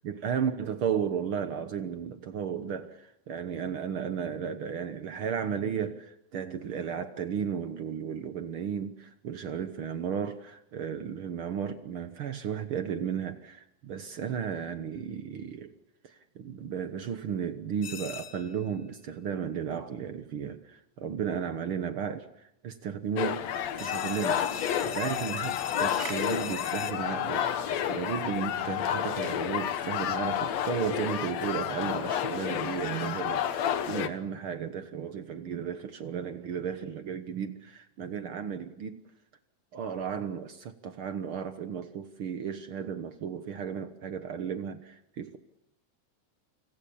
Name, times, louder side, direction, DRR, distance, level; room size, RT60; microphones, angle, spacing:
voice 1, 0.0-15.7 16.0-23.5 23.8-24.4 24.8-27.5 27.9-39.0 39.7-45.4, right 7 dB, 65° right, 1.3 m, -34 dB
sound 1, 17.8-18.6 23.8-26.9, left 7 dB, 85° left, 1.0 m, -40 dB
sound 2, 23.2-34.1, left 9 dB, 60° left, 2.1 m, -30 dB
sound 3, 23.2-28.2 28.4-32.9, right 1 dB, 10° right, 4.9 m, -49 dB
29.0 x 26.5 x 7.1 m
omnidirectional pair, 3.9 m